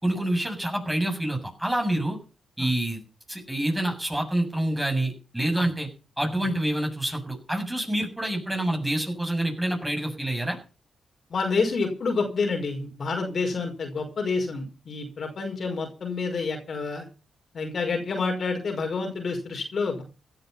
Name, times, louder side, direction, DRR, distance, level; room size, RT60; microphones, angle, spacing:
voice 1, 0.0-2.2 2.6-3.0 3.3-5.9 6.2-10.6, right 1 dB, 10° right, 4 dB, 7.3 m, -27 dB
voice 2, 11.3-17.1 17.5-20.0, left 4 dB, 60° left, 3 dB, 5.3 m, -28 dB
16.5 x 11.5 x 5.8 m, 0.34 s
cardioid pair, 60°, 0 cm